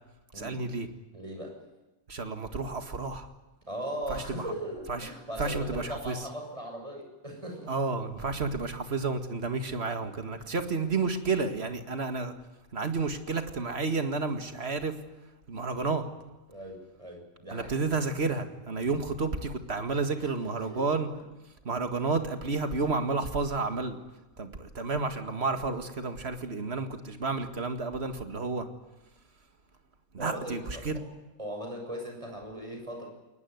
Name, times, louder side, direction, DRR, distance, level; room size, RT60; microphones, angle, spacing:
voice 1, 0.3-0.9 2.1-3.3 4.1-4.5 4.9-5.1 5.4-6.2 7.7-12.3 12.7-15.0 15.5-16.1 17.5-21.1 21.6-24.0 24.4-28.7 30.1-31.0, right 4 dB, 45° right, 7 dB, 2.1 m, -31 dB
voice 2, 1.1-1.6 3.7-7.7 10.4-10.5 16.5-17.8 20.2-20.3 20.7-20.9 30.2-30.6 31.4-33.1, equal, 20° right, 2 dB, 6.9 m, -38 dB
22.0 x 19.5 x 9.5 m, 1.1 s
omnidirectional pair, 1.5 m